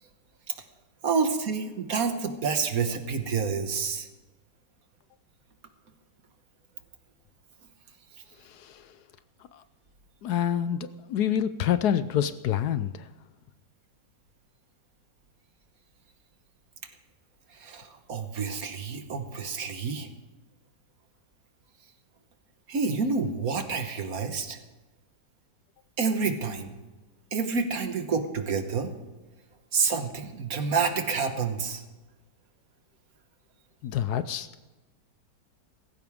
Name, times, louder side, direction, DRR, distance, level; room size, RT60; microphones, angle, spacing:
voice 1, 1.0-4.1 17.5-20.1 22.7-24.6 26.0-26.7 27.3-28.9 29.7-31.8, right 5 dB, 55° right, 7 dB, 1.6 m, -28 dB
voice 2, 8.4-8.9 9.5-9.6 10.2-13.1 33.8-34.5, left 9 dB, 70° left, 13 dB, 1.1 m, -27 dB
18.0 x 15.0 x 3.6 m, 1.2 s
omnidirectional pair, 1.9 m